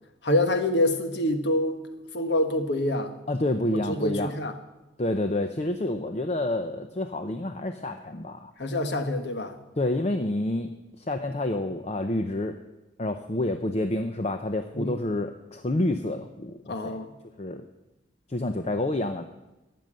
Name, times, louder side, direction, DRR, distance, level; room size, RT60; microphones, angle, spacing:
voice 1, 0.2-1.8 2.1-3.1 3.7-4.5 8.6-9.5 14.7-15.0 16.7-17.1, left 1 dB, 65° left, 7 dB, 1.4 m, -26 dB
voice 2, 3.3-4.3 5.0-8.5 9.8-10.7 11.0-12.6 13.0-17.0 17.4-17.6 18.3-19.3, left 1 dB, 35° left, 7 dB, 0.6 m, -28 dB
14.0 x 9.3 x 7.6 m, 1.0 s
head